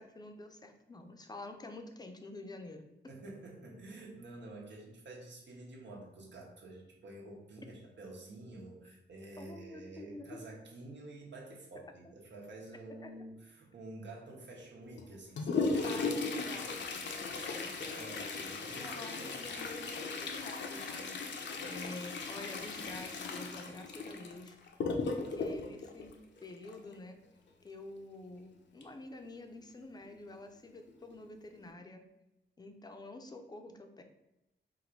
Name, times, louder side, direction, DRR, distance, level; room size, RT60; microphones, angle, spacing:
voice 1, 0.0-2.9 9.4-10.4 13.0-13.1 15.8-16.8 17.5-17.6 18.8-24.6 25.1-26.1 26.4-27.2 27.6-32.0 32.6-34.0, left 2 dB, 20° left, 5 dB, 0.5 m, -48 dB
voice 2, 3.1-16.7 17.3-19.6, right 2 dB, 80° right, -2 dB, 1.0 m, -49 dB
Toilet flush, 15.0-26.9 28.8-28.9 29.2-29.3 30.1-30.2 30.9-31.1 31.6-31.7, left 4 dB, 80° left, 0.6 m, -37 dB
3.9 x 2.6 x 4.4 m, 0.91 s
wide cardioid pair, 145°, 18 cm